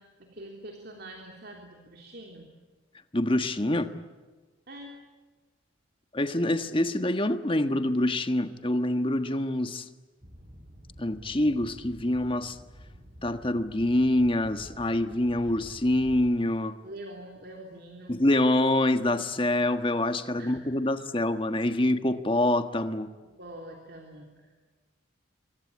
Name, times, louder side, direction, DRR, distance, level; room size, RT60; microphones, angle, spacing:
voice 1, 0.0-2.5 4.7-5.0 16.8-18.2 20.4-20.9 23.2-24.6, right 1 dB, 50° right, 1 dB, 3.4 m, -45 dB
voice 2, 3.1-3.9 6.1-9.9 11.0-12.6 13.2-16.7 18.1-23.1, left 1 dB, 25° left, 9 dB, 1.4 m, -26 dB
sound 1, 10.2-16.3, equal, 35° right, 5.2 m, -49 dB
27.0 x 24.5 x 8.7 m, 1.3 s
head